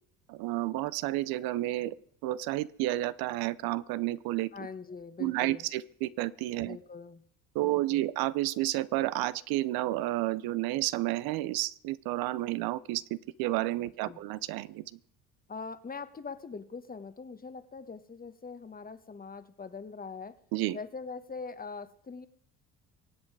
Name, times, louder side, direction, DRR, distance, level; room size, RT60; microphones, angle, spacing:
voice 1, 0.3-2.0 2.2-4.5 5.2-6.8 7.5-15.0 20.5-20.8, right 16 dB, 75° right, 17 dB, 0.8 m, -31 dB
voice 2, 4.5-5.6 6.6-7.2 7.6-8.1 14.0-14.2 15.5-20.4 20.7-22.3, left 4 dB, 25° left, 13 dB, 1.2 m, -42 dB
24.0 x 8.1 x 4.8 m, 0.63 s
supercardioid pair, 90°, 37 cm